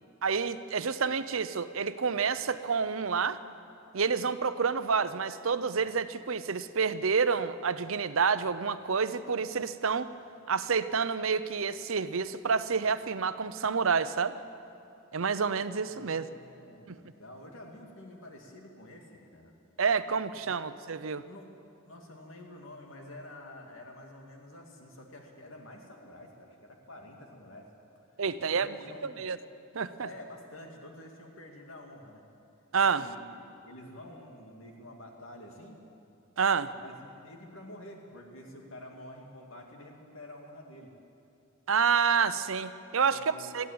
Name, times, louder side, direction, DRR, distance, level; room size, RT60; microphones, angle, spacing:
voice 1, 0.2-3.4 3.9-10.1 10.5-14.4 15.1-16.3 16.9-17.0 19.8-21.2 28.2-28.7 29.0-29.4 29.7-30.1 32.7-33.1 36.4-36.7 41.7-43.7, right 5 dB, 70° right, 13 dB, 0.7 m, -28 dB
voice 2, 15.8-19.5 20.5-20.6 21.2-21.5 21.8-27.7 28.1-29.2 30.0-32.2 33.0-35.8 36.7-40.9 43.0-43.7, left 1 dB, 70° left, 2 dB, 2.4 m, -49 dB
21.0 x 15.0 x 8.8 m, 2.7 s
head